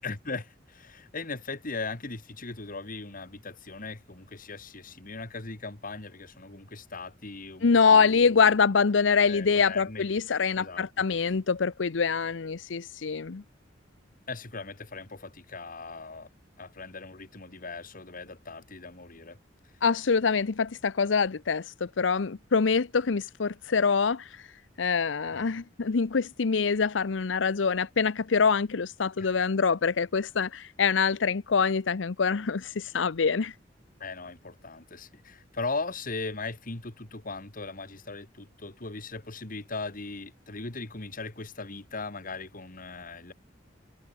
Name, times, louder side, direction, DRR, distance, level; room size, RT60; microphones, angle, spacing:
voice 1, 0.0-8.5 9.3-10.0 10.6-10.9 14.3-16.3 16.6-19.4 25.3-25.6 29.2-29.4 34.0-43.3, left 3 dB, 50° left, 2.4 m, -39 dB
voice 2, 7.6-13.4 19.8-24.5 24.8-33.5, left 5 dB, 85° left, 0.7 m, -25 dB
head